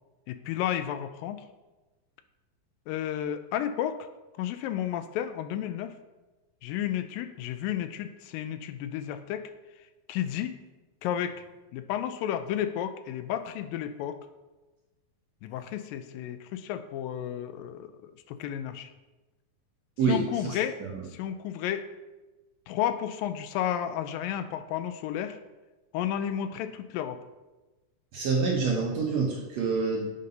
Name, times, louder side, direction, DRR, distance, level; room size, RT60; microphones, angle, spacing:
voice 1, 0.3-1.4 2.9-4.1 4.4-6.0 6.6-9.5 10.1-10.6 11.0-11.4 11.7-14.2 15.4-18.9 20.1-20.8 21.1-21.9 22.7-25.4 25.9-27.2, left 10 dB, 85° left, 10 dB, 2.3 m, -32 dB
voice 2, 20.0-20.6 28.1-30.1, right 4 dB, 70° right, -1 dB, 1.7 m, -27 dB
6.6 x 5.4 x 5.3 m, 1.1 s
omnidirectional pair, 4.0 m